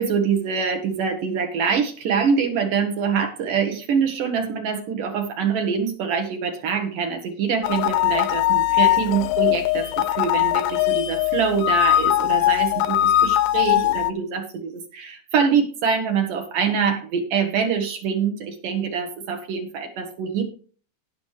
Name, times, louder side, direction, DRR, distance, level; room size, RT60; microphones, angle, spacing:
voice 1, 0.0-20.4, right 6 dB, 65° right, 4 dB, 2.6 m, -24 dB
sound 1, 7.6-14.1, left 13 dB, 75° left, 2.2 m, -20 dB
17.5 x 6.2 x 3.2 m, 0.40 s
omnidirectional pair, 4.5 m